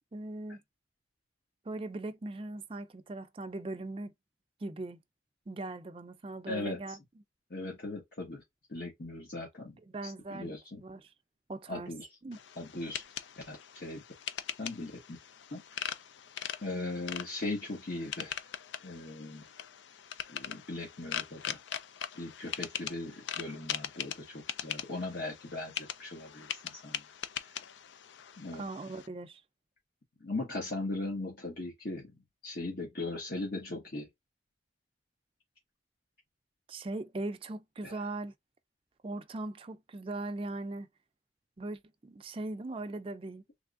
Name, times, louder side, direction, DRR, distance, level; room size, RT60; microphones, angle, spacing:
voice 1, 0.1-0.6 1.7-4.1 4.6-5.0 5.5-7.0 9.9-10.5 10.8-11.0 11.5-11.9 12.2-12.4 28.5-29.4 36.7-38.3 39.0-40.9 41.6-43.4, right 2 dB, 30° right, 0.4 m, -39 dB
voice 2, 6.5-7.0 7.5-8.4 8.7-9.8 10.0-10.8 11.7-12.1 12.6-13.0 13.4-14.0 14.6-14.9 15.5-15.6 16.6-18.4 18.8-19.4 20.3-21.6 22.1-27.0 27.4-27.6 28.4-28.6 30.2-34.1 37.8-38.0, left 2 dB, 60° left, 1.3 m, -39 dB
sound 1, 12.3-29.1, left 9 dB, 85° left, 0.4 m, -41 dB
3.4 x 3.2 x 2.4 m
head